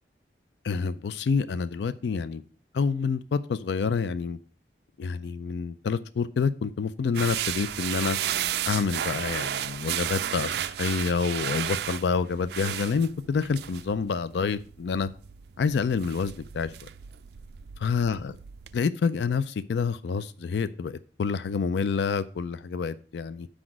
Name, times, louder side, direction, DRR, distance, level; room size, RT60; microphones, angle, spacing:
voice 1, 0.6-2.4 2.7-4.4 5.0-8.2 8.7-15.1 15.6-16.7 17.8-18.3 18.7-23.5, left 5 dB, 70° left, 0.3 m, -28 dB
sound 1, 7.1-18.8, right 10 dB, 60° right, 0.3 m, -33 dB
6.0 x 5.0 x 6.1 m
head